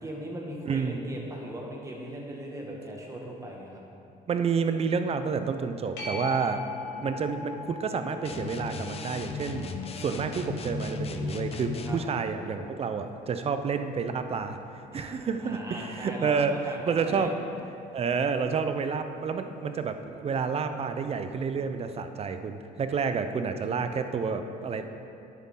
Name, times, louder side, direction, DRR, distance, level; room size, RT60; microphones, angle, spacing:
voice 1, 0.0-3.8 6.9-7.3 11.9-12.0 14.9-17.4 20.6-20.8 24.8-24.9, right 1 dB, 20° right, -1 dB, 1.7 m, -39 dB
voice 2, 0.7-1.0 4.3-6.6 7.0-14.6 14.9-16.6 16.9-17.3 17.9-24.8, right 5 dB, 35° right, 8 dB, 0.6 m, -29 dB
sound 1, 6.0-13.1 18.7-18.8, left 4 dB, 80° left, 2.4 m, -42 dB
sound 2, 8.2-12.1, left 4 dB, 35° left, 0.7 m, -36 dB
10.0 x 8.3 x 3.8 m, 2.7 s
cardioid pair, 110°, 17 cm